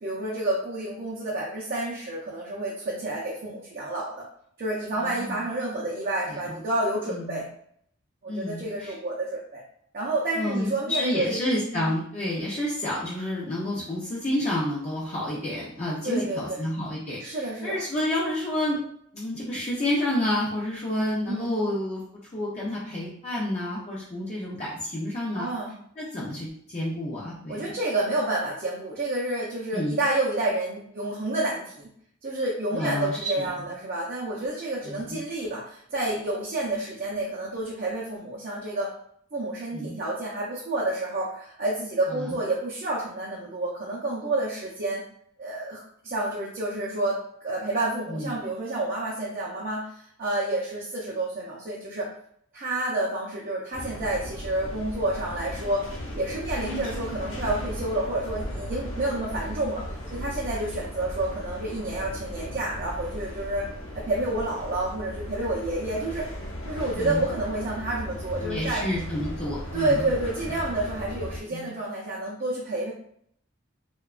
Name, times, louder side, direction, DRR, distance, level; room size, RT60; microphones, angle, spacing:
voice 1, 0.0-4.3 4.6-7.5 8.2-9.6 9.9-11.4 11.7-11.9 16.0-16.6 17.2-17.8 21.3-21.5 25.3-25.7 27.5-31.9 32.2-38.9 39.3-45.0 45.4-49.9 50.2-52.1 52.5-55.9 56.1-59.8 60.1-63.7 63.9-66.3 66.7-68.8 69.7-72.9, right 2 dB, 45° right, -4 dB, 0.4 m, -29 dB
voice 2, 5.0-5.5 6.3-6.6 7.1-7.4 8.3-8.9 10.3-18.8 19.1-22.0 22.3-25.5 26.0-27.8 29.7-30.0 32.7-33.5 34.9-35.2 39.7-40.0 42.1-42.4 48.1-48.3 66.9-67.3 68.4-70.0 71.5-71.7, left 1 dB, 30° left, -6 dB, 0.4 m, -29 dB
sound 1, 53.7-71.4, equal, 65° left, 0.7 m, -36 dB
2.7 x 2.2 x 2.3 m, 0.66 s
head